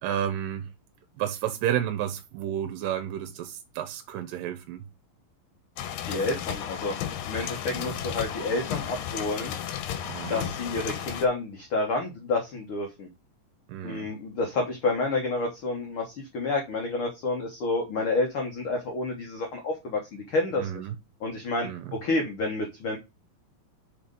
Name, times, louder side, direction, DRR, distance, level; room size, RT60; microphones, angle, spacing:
voice 1, 0.0-0.7 1.2-4.8 7.7-7.9 10.1-10.5 13.7-14.1 20.6-21.0 21.6-22.0, right 10 dB, 85° right, 2.3 m, -31 dB
sound 1, 5.8-11.3, left 10 dB, 90° left, 2.6 m, -34 dB
voice 2, 6.1-6.9 7.3-9.5 10.3-13.1 13.8-20.7 21.2-21.7 22.0-23.0, left 2 dB, 65° left, 1.3 m, -29 dB
5.8 x 4.3 x 5.2 m
omnidirectional pair, 4.0 m